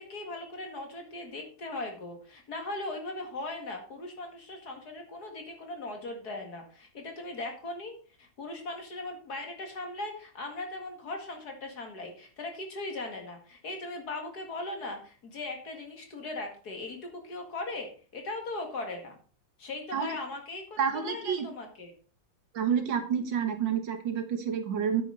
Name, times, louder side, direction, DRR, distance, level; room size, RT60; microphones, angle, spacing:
voice 1, 0.0-7.9 8.2-19.2 19.6-21.9, left 2 dB, 55° left, 4 dB, 2.4 m, -39 dB
voice 2, 20.8-21.5 22.5-25.0, right 7 dB, 70° right, 7 dB, 2.0 m, -29 dB
9.7 x 8.8 x 4.0 m, 0.39 s
omnidirectional pair, 2.1 m